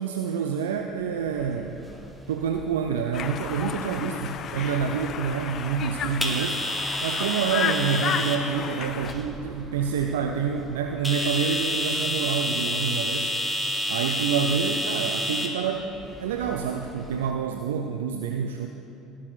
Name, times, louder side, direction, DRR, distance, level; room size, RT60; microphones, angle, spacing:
voice 1, 0.0-1.9 2.3-6.6 7.0-13.3 13.9-15.9 16.2-18.7, right 6 dB, 80° right, 4 dB, 0.4 m, -27 dB
sound 1, 1.2-17.3, left 1 dB, ahead, 1.3 m, -31 dB
Conversation, 3.1-9.1, left 8 dB, 50° left, 0.5 m, -32 dB
15.0 x 6.1 x 4.5 m, 2.8 s
hypercardioid pair, 70°, 0 cm